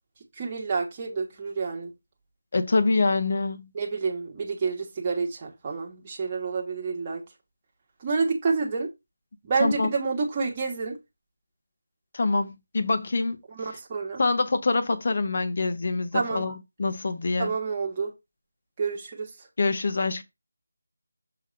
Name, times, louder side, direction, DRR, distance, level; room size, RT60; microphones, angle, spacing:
voice 1, 0.4-1.9 3.7-7.2 8.0-8.9 9.4-11.0 13.5-14.2 16.1-16.4 17.4-18.1 18.8-19.3, right 4 dB, 20° right, 1.4 m, -28 dB
voice 2, 2.5-3.7 9.6-9.9 12.1-13.4 14.2-17.5 19.6-20.2, left 3 dB, 40° left, 1.0 m, -25 dB
6.8 x 3.0 x 5.1 m
figure-of-eight pair, 170°, 0 cm